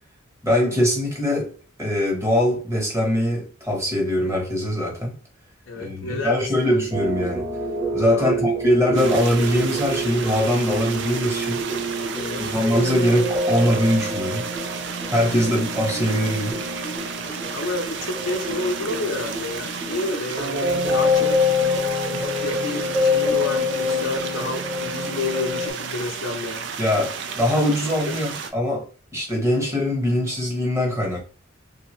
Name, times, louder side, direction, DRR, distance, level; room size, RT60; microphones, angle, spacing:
voice 1, 0.4-1.5 1.8-5.1 5.8-7.4 7.9-11.6 12.4-14.5 15.1-16.6 26.8-28.8 29.1-31.2, left 1 dB, 15° right, 1.1 m, -22 dB
voice 2, 5.7-6.8 8.1-8.4 12.1-12.5 15.4-15.6 17.5-21.4 22.1-26.7 28.1-28.2, left 2 dB, 70° left, 0.5 m, -30 dB
sound 1, 6.9-25.7, left 2 dB, 30° right, 1.5 m, -26 dB
sound 2, 8.9-28.5, right 6 dB, 60° right, 0.4 m, -33 dB
3.4 x 2.7 x 2.9 m
head